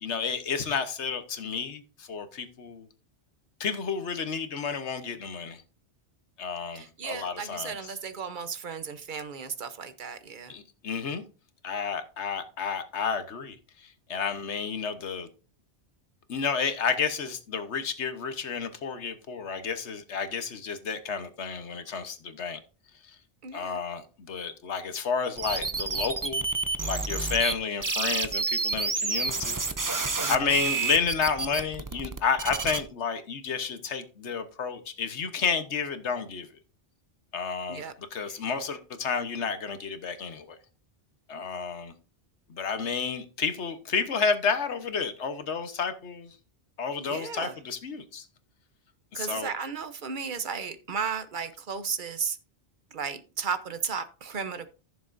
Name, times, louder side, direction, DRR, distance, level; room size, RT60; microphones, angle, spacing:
voice 1, 0.0-2.9 3.6-5.6 6.4-8.0 10.5-11.2 11.6-15.3 16.3-22.6 23.5-26.5 26.8-29.6 30.3-36.5 37.3-40.6 41.3-41.9 42.5-46.3 46.8-48.3 49.1-49.5, left 6 dB, 80° left, 1.4 m, -31 dB
voice 2, 6.7-10.5 23.4-23.8 30.2-30.3 37.7-37.9 47.0-47.5 49.1-52.4 52.9-54.7, right 6 dB, 50° right, 1.0 m, -34 dB
sound 1, 25.4-27.5 27.8-32.8, right 4 dB, 25° right, 0.5 m, -29 dB
15.0 x 7.0 x 2.6 m
omnidirectional pair, 1.1 m